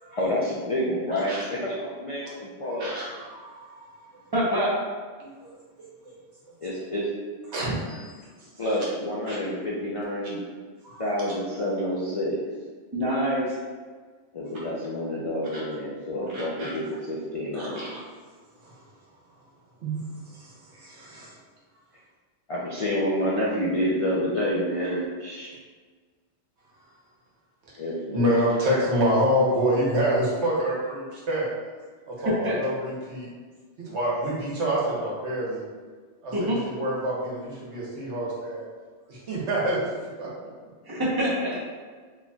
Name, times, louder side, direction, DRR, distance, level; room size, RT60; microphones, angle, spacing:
voice 1, 0.2-2.9 6.6-7.1 8.6-10.4 11.0-12.4 14.3-17.8 22.5-25.5 27.8-28.2, equal, 55° left, -6 dB, 0.3 m, -28 dB
voice 2, 2.6-3.8 5.2-5.5 7.5-8.2 9.3-9.4 10.8-11.0 15.5-15.6 16.3-16.7 17.5-18.0 19.8-20.0 20.4-20.5 20.7-21.3 28.1-31.5 32.1-33.3 33.9-35.6 36.2-38.6 39.1-39.8 40.2-40.3, equal, 65° right, -5 dB, 1.2 m, -27 dB
voice 3, 4.3-4.7 12.9-13.5 32.4-32.5 36.3-36.6 40.9-41.6, equal, 20° right, -7 dB, 0.8 m, -25 dB
3.9 x 3.2 x 2.3 m, 1.5 s
omnidirectional pair, 1.2 m